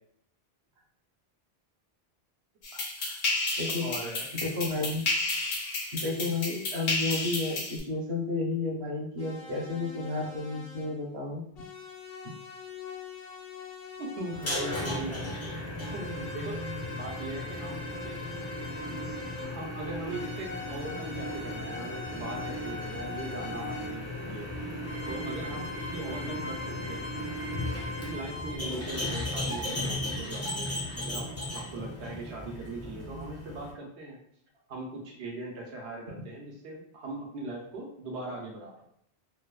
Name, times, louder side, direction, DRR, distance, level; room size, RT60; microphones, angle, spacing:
sound 1, 2.6-7.8, left 2 dB, 90° left, 1.0 m, -32 dB
voice 1, 2.7-3.2 3.7-4.3 14.0-15.3 15.9-16.6 16.9-18.2 19.4-24.5 25.0-27.1 27.9-34.2 34.7-38.7, right 2 dB, 80° right, 0 dB, 0.9 m, -40 dB
voice 2, 3.6-3.9 4.4-5.0 5.9-11.4 12.2-12.3, left 3 dB, 40° right, -2 dB, 0.5 m, -32 dB
sound 2, 9.2-11.0 11.6-15.1 15.8-19.7 20.1-24.0 24.8-28.6, left 3 dB, 65° left, 0.8 m, -43 dB
sound 3, 14.3-33.7, left 1 dB, 20° left, 0.4 m, -36 dB
3.0 x 2.0 x 2.2 m, 0.68 s
omnidirectional pair, 1.1 m